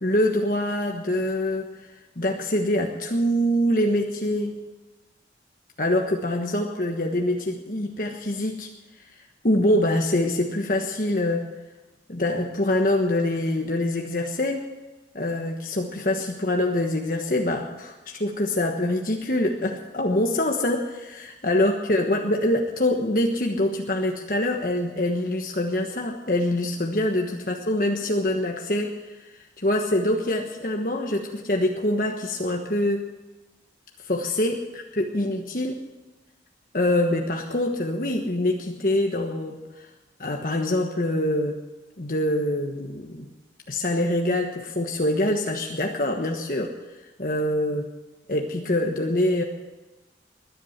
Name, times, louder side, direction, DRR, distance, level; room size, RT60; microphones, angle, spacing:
voice 1, 0.0-1.7 2.2-4.6 5.8-8.7 9.4-11.5 12.1-14.7 15.1-33.1 34.0-35.8 36.7-39.9 40.2-41.6 42.0-43.3 43.7-46.7 47.2-47.8 48.3-49.4, left 1 dB, 50° left, 1 dB, 1.3 m, -25 dB
20.5 x 11.0 x 5.9 m, 1.1 s
head